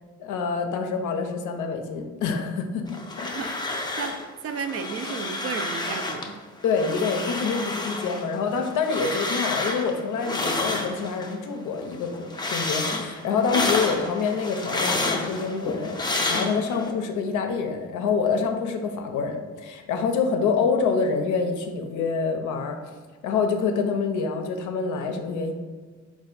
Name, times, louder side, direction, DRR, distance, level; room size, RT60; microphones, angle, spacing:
voice 1, 0.2-3.4 6.6-22.8 23.2-25.5, left 5 dB, 80° left, 5 dB, 0.5 m, -26 dB
sound 1, 2.9-4.3 4.5-6.3 6.6-11.4 11.7-16.9, left 2 dB, 15° left, 0.5 m, -30 dB
voice 2, 4.4-6.4, right 6 dB, 50° right, 8 dB, 0.4 m, -32 dB
4.1 x 2.5 x 3.8 m, 1.5 s
cardioid pair, 90°, 30 cm